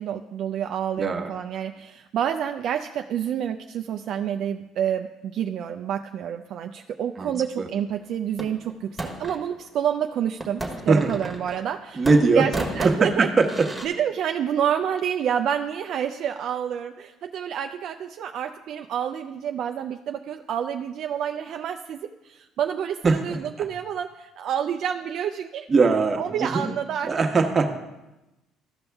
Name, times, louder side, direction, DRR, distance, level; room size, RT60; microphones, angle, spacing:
voice 1, 0.0-12.1 12.4-12.5 12.8-13.3 13.8-25.9 26.2-27.1, right 9 dB, 60° right, 6 dB, 0.4 m, -28 dB
voice 2, 1.0-1.3 7.2-7.7 10.9-11.1 11.9-12.5 12.8-13.7 23.0-23.7 25.7-26.7 27.0-27.7, right 4 dB, 30° right, 3 dB, 1.2 m, -21 dB
sound 1, 8.4-9.4 10.4-11.8 12.0-13.9, right 1 dB, ahead, 1.4 m, -33 dB
14.0 x 5.4 x 3.5 m, 0.99 s
supercardioid pair, 90°, 0 cm